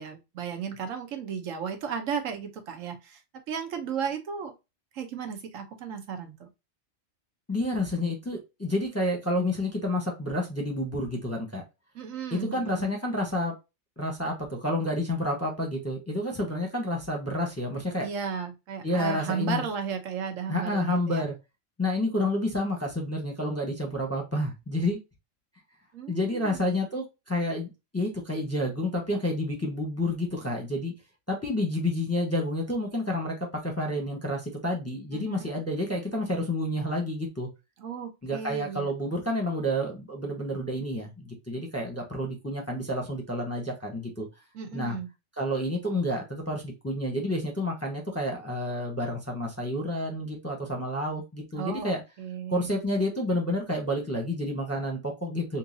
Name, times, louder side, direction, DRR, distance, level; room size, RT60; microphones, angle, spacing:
voice 1, 0.0-3.2 3.5-4.5 4.9-6.5 11.9-12.8 18.0-21.2 25.9-26.6 35.1-35.5 37.8-38.9 44.5-45.1 51.5-52.8, right 7 dB, 80° right, 1.2 m, -34 dB
voice 2, 7.5-11.6 12.3-13.5 14.0-18.1 18.8-19.6 20.5-21.3 21.8-25.0 26.1-30.9 31.3-37.5 38.2-44.3 44.7-45.0 45.4-52.0 52.5-55.6, left 1 dB, 15° left, 0.7 m, -29 dB
3.8 x 2.6 x 2.6 m
omnidirectional pair, 1.3 m